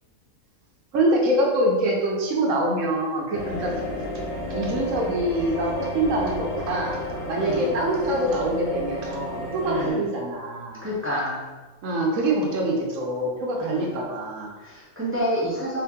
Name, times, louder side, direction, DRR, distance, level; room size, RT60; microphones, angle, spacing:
voice 1, 0.9-3.7 4.5-7.0 7.3-10.8 11.8-14.5, right 1 dB, 70° right, -1 dB, 1.1 m, -25 dB
sound 1, 3.3-9.9, left 1 dB, 65° left, 1.1 m, -31 dB
voice 2, 7.4-7.7 9.6-10.0 10.8-11.5 13.6-13.9 14.6-15.8, equal, 15° right, -7 dB, 0.4 m, -28 dB
3.3 x 2.8 x 3.5 m, 1.3 s
omnidirectional pair, 1.5 m